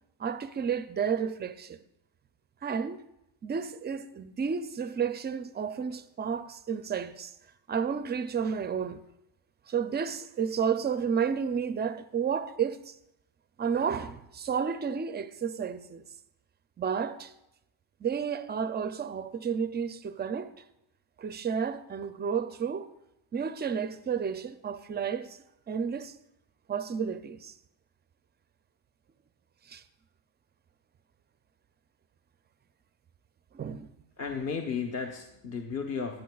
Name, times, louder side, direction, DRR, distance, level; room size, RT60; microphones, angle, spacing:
voice 1, 0.2-1.8 2.6-3.0 3.4-7.3 7.7-9.0 9.7-13.0 13.6-16.0 16.8-17.3 18.0-20.5 21.2-22.9 23.3-25.4 25.7-26.2 26.7-27.5 29.7-29.8 33.5-33.9, right 7 dB, 25° right, 0.4 m, -31 dB
voice 2, 34.2-36.2, left 5 dB, 30° left, 0.9 m, -34 dB
19.0 x 11.5 x 2.3 m
cardioid pair, 120°, 48 cm